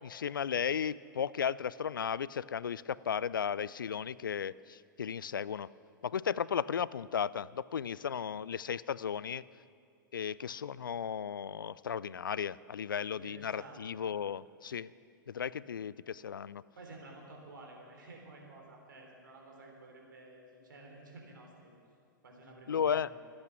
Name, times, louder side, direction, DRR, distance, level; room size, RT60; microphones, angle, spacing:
voice 1, 0.0-5.7 6.0-9.4 10.1-14.9 15.3-16.6 22.7-23.1, left 7 dB, 75° left, 20 dB, 0.4 m, -35 dB
voice 2, 13.1-14.0 16.8-21.7 22.2-23.1, right 2 dB, 70° right, 0 dB, 3.9 m, -52 dB
25.5 x 8.6 x 6.0 m, 2.3 s
figure-of-eight pair, 100°, 11 cm